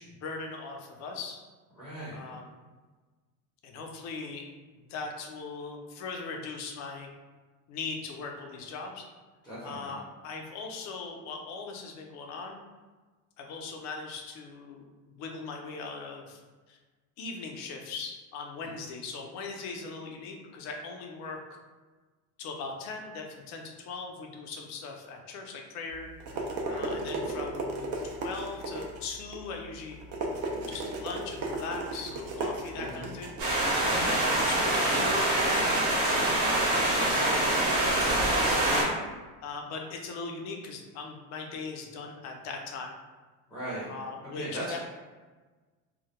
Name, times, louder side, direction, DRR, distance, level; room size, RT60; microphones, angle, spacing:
voice 1, 0.0-1.4 2.1-2.5 3.6-4.5 4.8-7.1 7.7-9.0 9.6-12.6 13.4-16.4 16.7-16.8 17.2-21.6 22.4-26.1 26.3-26.4 26.7-30.0 30.6-36.3 36.8-38.7 39.4-42.9 43.9-44.8, left 4 dB, 55° left, 2 dB, 0.4 m, -39 dB
voice 2, 1.8-2.2 9.4-9.9 26.6-26.9 32.7-33.1 33.9-34.2 38.0-38.2 43.5-43.9 44.3-44.8, right 1 dB, ahead, -10 dB, 0.6 m, -39 dB
sound 1, 25.9-34.8, right 2 dB, 45° right, 0.4 m, -36 dB
sound 2, 33.4-38.8, right 1 dB, 85° right, 1.0 m, -25 dB
2.1 x 2.0 x 2.8 m, 1.3 s
cardioid pair, 145°, 34 cm